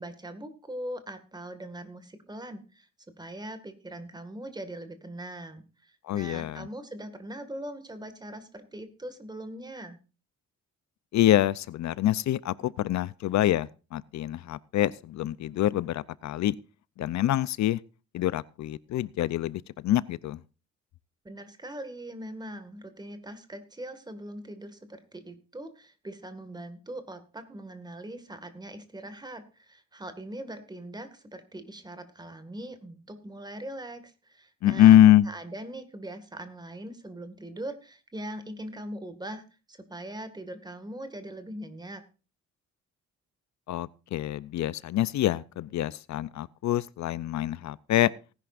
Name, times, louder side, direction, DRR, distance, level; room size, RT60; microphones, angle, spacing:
voice 1, 0.0-2.9 3.2-10.0 21.2-35.0 35.3-42.0, right 1 dB, 15° right, 1.9 m, -41 dB
voice 2, 6.0-6.7 11.1-16.5 17.0-17.8 18.1-20.4 34.6-35.3 43.7-48.1, left 12 dB, 70° left, 0.6 m, -24 dB
18.5 x 11.0 x 2.5 m
cardioid pair, 140°, 30 cm